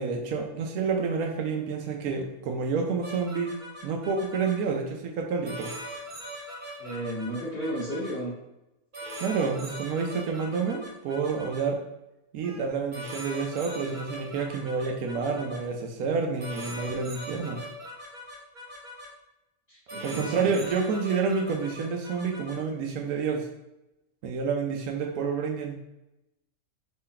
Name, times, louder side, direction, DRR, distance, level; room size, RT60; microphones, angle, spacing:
voice 1, 0.0-3.5 3.8-5.7 9.2-11.8 12.3-17.6 20.0-23.5 24.2-25.8, right 5 dB, 75° right, 2 dB, 1.1 m, -29 dB
sound 1, 3.0-4.5 5.4-8.1 8.9-11.6 12.4-12.6 12.9-15.6 16.4-19.1 19.9-22.5, equal, 35° right, 1.1 m, -41 dB
voice 2, 6.8-8.3 19.7-20.5, equal, 40° left, -10 dB, 1.8 m, -33 dB
3.8 x 3.3 x 4.2 m, 0.91 s
omnidirectional pair, 1.5 m